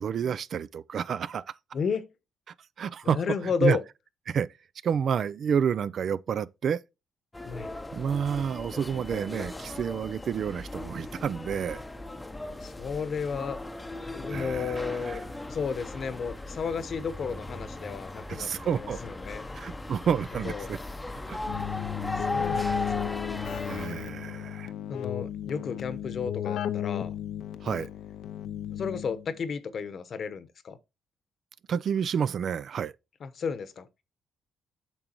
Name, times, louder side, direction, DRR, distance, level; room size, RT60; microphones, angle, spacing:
voice 1, 0.0-1.5 2.8-3.2 3.6-3.8 4.3-4.5 4.8-6.8 7.9-11.8 14.3-15.2 18.3-19.0 19.6-20.8 21.3-21.4 22.6-22.8 23.7-24.7 27.6-27.9 31.7-32.9, right 7 dB, 55° right, 0.4 m, -29 dB
voice 2, 1.7-2.1 3.0-3.8 7.4-7.7 12.4-13.6 14.1-18.5 18.8-19.7 20.3-20.7 22.2-23.1 24.9-27.1 28.7-30.8 33.2-33.9, left 6 dB, 55° left, 1.0 m, -33 dB
sound 1, 7.3-23.9, left 2 dB, 15° left, 0.7 m, -37 dB
Keyboard (musical), 21.5-29.3, left 11 dB, 80° left, 0.5 m, -34 dB
8.8 x 6.1 x 2.9 m
cardioid pair, 90°, 0 cm